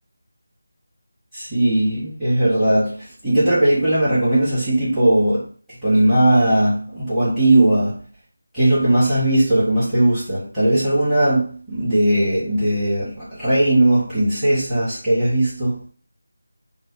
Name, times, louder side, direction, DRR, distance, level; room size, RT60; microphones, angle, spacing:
voice 1, 1.3-5.5 5.8-8.0 8.5-15.8, right 1 dB, 5° right, 1.3 m, -18 dB
3.2 x 2.0 x 3.8 m
figure-of-eight pair, 160°, 0 cm